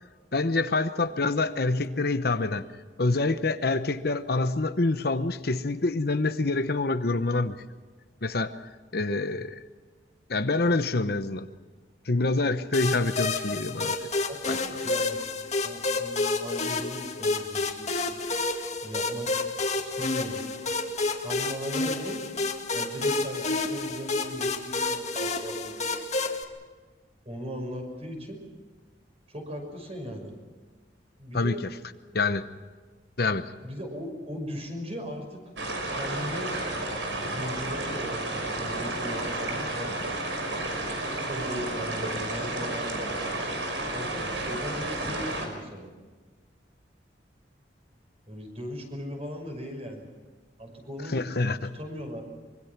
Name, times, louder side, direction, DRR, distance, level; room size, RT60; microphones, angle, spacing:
voice 1, 0.3-2.6 3.0-7.6 8.2-9.6 10.3-11.5 12.0-13.9 14.5-14.6 15.0-15.1 31.3-31.6 32.1-32.4 33.2-33.5 51.1-51.7, left 3 dB, 55° left, 10 dB, 0.9 m, -26 dB
sound 1, 12.7-26.4, left 3 dB, 40° left, 2.1 m, -29 dB
voice 2, 14.3-15.2 15.6-18.2 18.8-19.5 19.8-20.5 21.2-22.2 22.7-26.1 27.2-28.4 29.3-30.3 31.2-31.6 33.6-35.4 35.9-36.5 37.2-40.0 41.3-43.5 43.9-45.9 48.3-50.1 50.6-51.2 51.7-52.2, equal, 35° right, 3 dB, 5.9 m, -38 dB
sound 2, 35.6-45.5, right 2 dB, 85° right, 5.5 m, -31 dB
25.0 x 24.0 x 6.0 m, 1.4 s
head